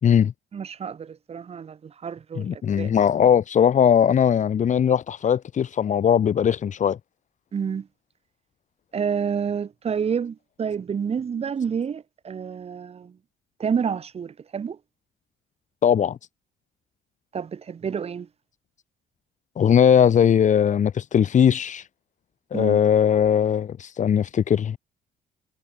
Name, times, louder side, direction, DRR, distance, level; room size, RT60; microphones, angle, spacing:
voice 1, 0.0-0.3 2.3-7.0 15.8-16.2 19.6-21.9 22.5-24.8, left 8 dB, 45° left, 4.8 m, -19 dB
voice 2, 0.5-2.9 7.5-7.9 8.9-13.2 13.6-14.8 17.3-18.3 22.5-22.8, right 7 dB, 35° right, 2.6 m, -29 dB
cardioid pair, 110°, 17 cm